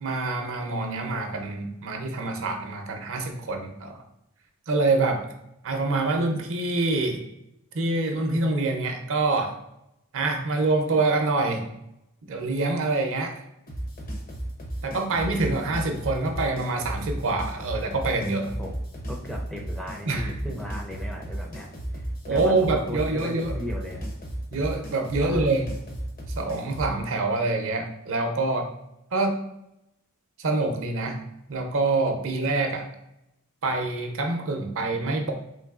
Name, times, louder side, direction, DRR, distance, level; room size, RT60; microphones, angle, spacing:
voice 1, 0.0-3.9 4.7-5.2 5.6-7.2 7.7-9.6 10.1-11.7 12.2-13.4 14.8-18.5 20.1-20.3 22.3-23.5 24.5-25.6 26.4-28.7 29.1-29.4 30.4-31.2 31.5-32.9 33.6-35.3, right 3 dB, 60° right, 4 dB, 0.6 m, -26 dB
sound 1, 13.7-26.9, right 1 dB, 40° left, 0.7 m, -34 dB
voice 2, 19.1-24.1 25.2-25.5, left 1 dB, 5° left, -1 dB, 0.4 m, -37 dB
3.8 x 3.0 x 2.4 m, 0.85 s
head